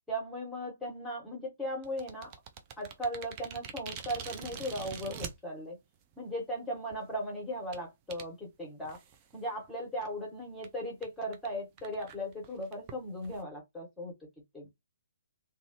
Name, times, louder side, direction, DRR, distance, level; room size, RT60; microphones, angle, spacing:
voice 1, 0.1-2.3 2.8-5.8 6.2-9.0 9.3-14.1 14.5-14.7, equal, 5° left, 1.3 m, -37 dB
sound 1, 1.8-5.3 6.1-6.2 6.8-7.0 7.7-7.8 8.1-8.2 8.9-9.3 9.6-9.7 10.1-10.2 10.6-10.7 11.0-11.1 11.3-11.5 11.8-13.4, right 7 dB, 25° right, 0.5 m, -44 dB
2.6 x 2.3 x 2.8 m
figure-of-eight pair, 130°, 0 cm